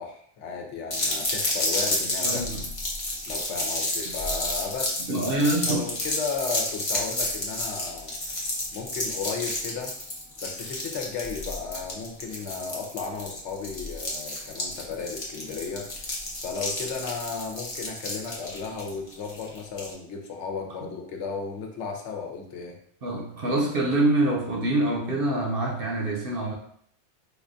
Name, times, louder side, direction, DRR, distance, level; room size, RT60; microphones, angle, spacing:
voice 1, 0.0-2.5 3.3-8.2 8.7-9.9 10.4-15.9 16.4-22.8, left 5 dB, 90° left, 2 dB, 1.0 m, -34 dB
sound 1, 0.9-19.9, left 1 dB, 35° left, 0.7 m, -31 dB
voice 2, 2.2-2.6 4.1-4.2 5.1-5.9 23.0-26.5, right 2 dB, 60° right, -1 dB, 0.9 m, -25 dB
4.7 x 2.3 x 2.5 m, 0.62 s
omnidirectional pair, 1.2 m